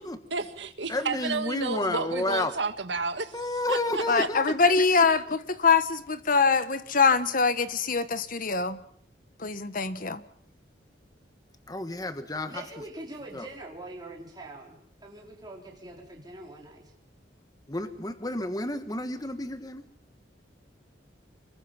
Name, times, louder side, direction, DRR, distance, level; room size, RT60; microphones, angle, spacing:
voice 1, 0.3-3.4 3.7-4.3, right 4 dB, 80° right, 1.8 m, -31 dB
voice 2, 0.9-2.5 3.3-4.8 11.7-12.6 13.3-13.5 17.7-19.8, left 2 dB, 20° left, 1.4 m, -31 dB
voice 3, 4.1-8.8 9.4-10.2, left 4 dB, 50° left, 1.3 m, -24 dB
voice 4, 12.5-16.9, right 2 dB, 25° right, 4.7 m, -43 dB
25.5 x 23.0 x 5.8 m
head